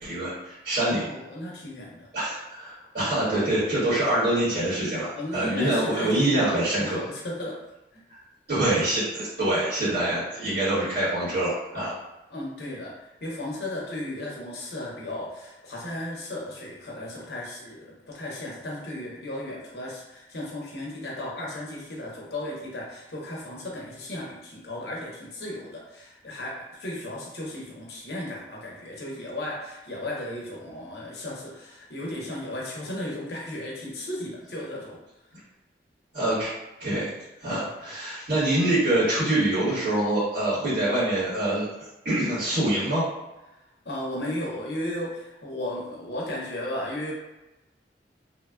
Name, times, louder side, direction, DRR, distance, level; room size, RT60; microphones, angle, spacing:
voice 1, 0.0-1.0 2.1-7.0 8.5-11.9 36.1-36.5 36.8-37.1 37.4-41.7 42.0-43.0, right 1 dB, 70° right, -11 dB, 1.5 m, -25 dB
voice 2, 0.8-2.1 5.2-7.6 7.9-8.0 12.3-35.0 43.8-47.1, left 1 dB, 65° left, -3 dB, 0.8 m, -35 dB
3.1 x 2.2 x 2.4 m, 1.0 s
head